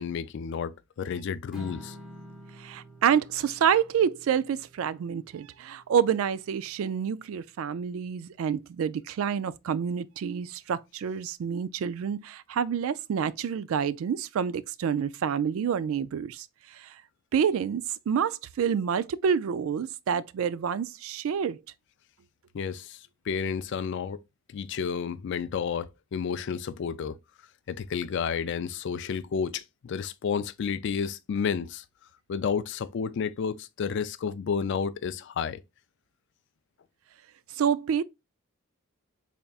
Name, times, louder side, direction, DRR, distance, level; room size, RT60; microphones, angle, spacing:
voice 1, 0.0-2.0 22.5-24.2 24.5-27.2 27.7-31.8 32.3-35.6, left 6 dB, 55° left, 0.3 m, -31 dB
Strum, 1.5-7.8, equal, ahead, 0.8 m, -49 dB
voice 2, 2.6-16.5 16.7-16.9 17.3-21.6 37.6-38.0, right 7 dB, 65° right, 0.3 m, -28 dB
4.0 x 3.5 x 2.3 m
head